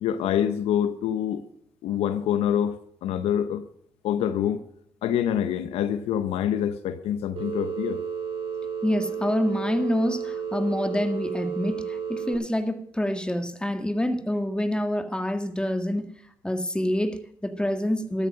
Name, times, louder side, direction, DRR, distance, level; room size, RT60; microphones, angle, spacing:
voice 1, 0.0-1.4 1.8-3.6 4.0-4.6 5.0-8.0, left 9 dB, 80° left, 0.8 m, -26 dB
Telephone, 7.4-12.4, right 7 dB, 60° right, 4.8 m, -32 dB
voice 2, 8.8-16.1 16.4-18.3, left 1 dB, 10° left, 1.9 m, -27 dB
13.0 x 9.1 x 6.3 m
supercardioid pair, 50°, 10 cm